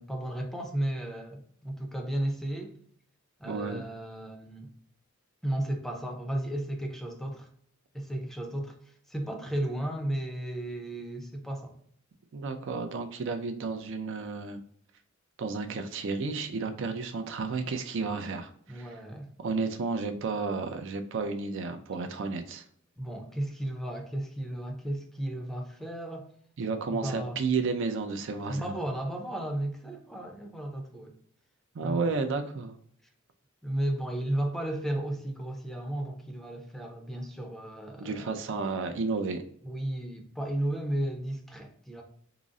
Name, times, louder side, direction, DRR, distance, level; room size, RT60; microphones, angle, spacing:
voice 1, 0.0-2.7 3.4-4.7 5.4-7.5 7.9-11.7 18.7-19.3 23.0-26.3 26.9-27.4 28.5-31.1 31.8-32.1 33.6-38.3 39.6-42.0, right 1 dB, ahead, 2 dB, 0.5 m, -34 dB
voice 2, 3.4-3.8 12.3-14.6 15.4-18.9 19.4-22.6 26.6-28.7 31.7-32.8 38.0-39.4, right 4 dB, 60° right, 7 dB, 0.4 m, -32 dB
3.8 x 2.0 x 3.6 m, 0.62 s
head